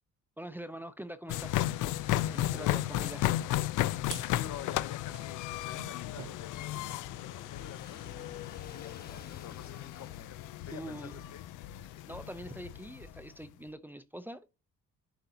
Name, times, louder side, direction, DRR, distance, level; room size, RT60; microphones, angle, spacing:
voice 1, 0.4-1.8 2.1-3.5 10.7-11.2 12.1-14.5, right 1 dB, 5° right, 0.6 m, -44 dB
sound 1, 1.3-13.3, left 14 dB, 90° left, 0.5 m, -34 dB
sound 2, 1.4-7.0, right 11 dB, 75° right, 0.8 m, -52 dB
voice 2, 4.2-8.1 8.7-10.4 10.6-11.4 11.8-12.0, left 9 dB, 65° left, 1.0 m, -48 dB
Car passing by / Engine, 5.2-13.1, left 4 dB, 30° left, 1.3 m, -56 dB
11.5 x 3.9 x 2.9 m
cardioid pair, 90°, 30 cm